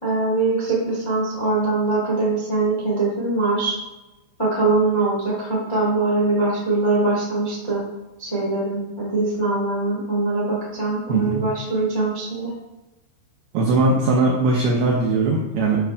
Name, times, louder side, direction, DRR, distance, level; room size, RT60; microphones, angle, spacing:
voice 1, 0.0-3.8 4.4-7.8 8.2-12.5, right 3 dB, 35° left, -8 dB, 0.4 m, -22 dB
voice 2, 11.1-11.5 13.5-15.8, right 2 dB, 85° right, -1 dB, 2.2 m, -20 dB
10.5 x 6.1 x 2.4 m, 1.0 s
omnidirectional pair, 5.8 m